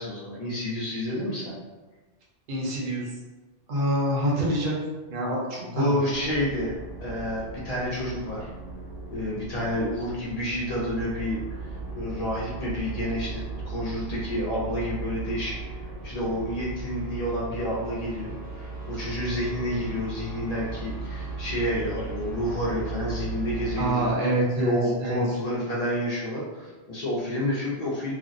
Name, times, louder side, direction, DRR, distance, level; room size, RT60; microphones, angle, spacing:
voice 1, 0.0-1.6 5.6-6.7 7.0-8.5 9.1-15.5 16.0-24.1 24.6-28.1, left 1 dB, 55° left, -6 dB, 0.4 m, -29 dB
voice 2, 2.5-3.1 3.7-4.7 5.1-5.9 23.8-24.7 25.0-25.2, right 1 dB, 50° right, -4 dB, 0.7 m, -26 dB
sound 1, 6.1-23.9, right 3 dB, 25° left, 0.7 m, -37 dB
2.4 x 2.0 x 2.5 m, 1.2 s
omnidirectional pair, 1.2 m